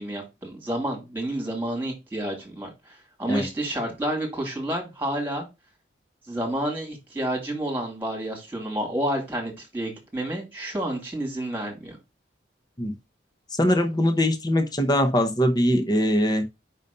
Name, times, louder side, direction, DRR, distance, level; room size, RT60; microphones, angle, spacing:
voice 1, 0.0-5.5 6.3-12.0, right 1 dB, 10° right, 2.7 m, -30 dB
voice 2, 13.5-16.4, equal, 20° left, 0.9 m, -22 dB
5.4 x 4.0 x 5.4 m
head